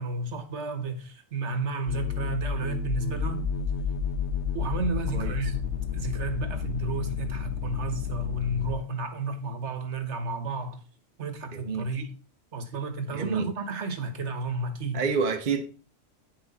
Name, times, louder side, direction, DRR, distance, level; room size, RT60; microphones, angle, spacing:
voice 1, 0.0-3.5 4.5-5.7 5.9-10.8 11.2-12.1 12.5-15.0, right 3 dB, 60° right, 1.3 m, -32 dB
sound 1, 1.9-8.7, left 6 dB, 60° left, 1.4 m, -31 dB
voice 2, 13.1-13.5 14.9-15.7, right 5 dB, 45° right, 0.8 m, -28 dB
8.7 x 6.0 x 4.0 m
omnidirectional pair, 1.4 m